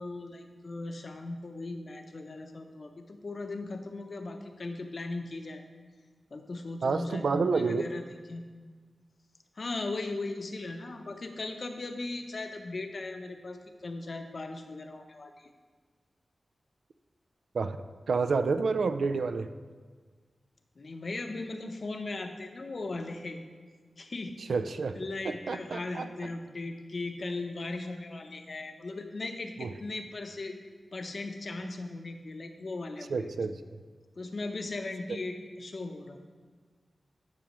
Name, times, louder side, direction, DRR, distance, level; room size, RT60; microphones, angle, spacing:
voice 1, 0.0-5.6 6.3-8.0 8.3-8.4 9.6-15.5 20.8-23.4 24.0-24.4 24.9-30.6 30.9-33.3 34.2-36.2, left 2 dB, 55° left, 6 dB, 0.7 m, -38 dB
voice 2, 6.8-7.9 17.5-19.5 24.5-25.0 25.2-26.1 29.6-29.7 31.6-31.7 33.1-33.6, right 4 dB, 85° right, 10 dB, 0.4 m, -29 dB
10.5 x 6.1 x 3.0 m, 1.5 s
wide cardioid pair, 95°, 0 cm